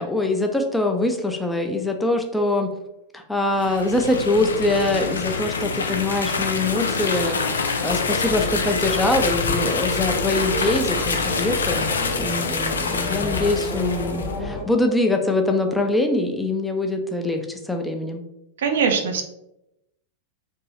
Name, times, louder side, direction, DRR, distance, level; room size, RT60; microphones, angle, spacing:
voice 1, 0.0-2.7 3.1-18.2, left 2 dB, 5° left, 3 dB, 0.4 m, -23 dB
Paisaje-Sonoro-uem-fuente, 3.5-14.3, left 4 dB, 70° left, 0.3 m, -26 dB
Moscow metro train announcement, 7.9-14.6, left 1 dB, 40° left, 0.9 m, -31 dB
voice 2, 18.6-19.2, right 6 dB, 60° right, 5 dB, 0.4 m, -21 dB
3.0 x 2.6 x 3.0 m, 0.85 s
figure-of-eight pair, 90°, 0 cm